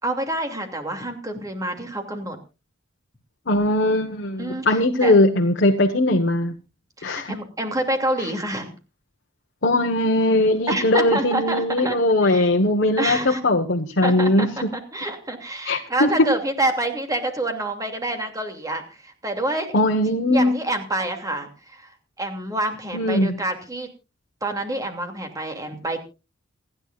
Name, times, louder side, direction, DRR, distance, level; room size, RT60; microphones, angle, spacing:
voice 1, 0.0-2.4 4.4-5.1 7.0-8.7 10.7-12.0 12.2-12.5 13.0-13.4 14.0-19.7 20.3-23.9 24.4-26.0, right 1 dB, 20° right, 5 dB, 2.6 m, -27 dB
voice 2, 3.5-6.6 7.0-7.3 8.2-8.3 9.6-14.5 15.6-16.1 19.7-20.5 22.9-23.4, left 1 dB, 60° left, 3 dB, 1.3 m, -20 dB
28.0 x 10.0 x 2.5 m, 0.30 s
head